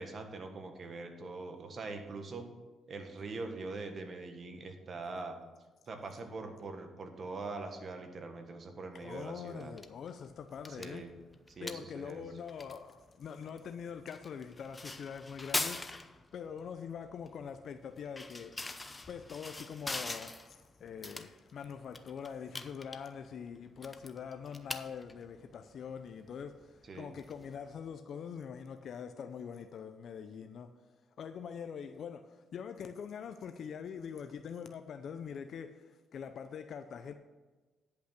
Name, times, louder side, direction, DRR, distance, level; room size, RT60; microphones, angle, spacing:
voice 1, 0.0-2.5 2.9-5.4 5.9-9.7 10.7-11.1 11.5-12.3 26.8-27.1, right 3 dB, 45° right, 1.5 m, -43 dB
voice 2, 8.9-11.0 11.6-18.5 19.1-30.7 31.2-37.1, left 7 dB, 60° left, 0.6 m, -44 dB
sound 1, 9.6-27.9, left 2 dB, 20° left, 0.7 m, -44 dB
10.5 x 5.7 x 5.9 m
cardioid pair, 90°, 0 cm